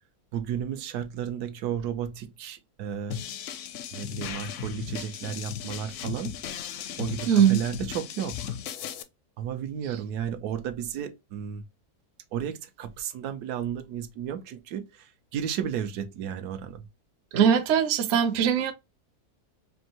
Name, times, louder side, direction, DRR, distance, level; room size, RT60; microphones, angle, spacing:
voice 1, 0.3-3.2 3.9-6.4 7.0-8.6 9.4-11.6 12.3-16.8, right 8 dB, 80° right, 1.2 m, -33 dB
sound 1, 3.1-9.0, left 9 dB, 70° left, 0.7 m, -36 dB
voice 2, 7.3-7.6 17.3-18.7, right 8 dB, 60° right, 0.8 m, -21 dB
4.4 x 2.6 x 2.8 m
omnidirectional pair, 1.7 m